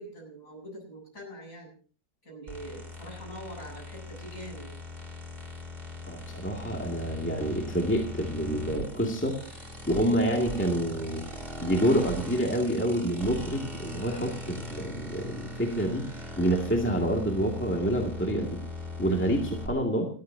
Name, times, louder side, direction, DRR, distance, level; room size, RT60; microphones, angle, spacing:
voice 1, 0.0-1.7 2.2-4.7, right 1 dB, 45° left, 0 dB, 8.4 m, -43 dB
sound 1, 2.5-19.7, left 2 dB, 30° right, 3.3 m, -39 dB
voice 2, 6.1-9.4 9.9-11.2 11.6-16.0 16.4-18.6 19.0-20.1, right 1 dB, 5° left, 0 dB, 2.1 m, -27 dB
29.0 x 10.5 x 2.8 m, 0.41 s
omnidirectional pair, 1.9 m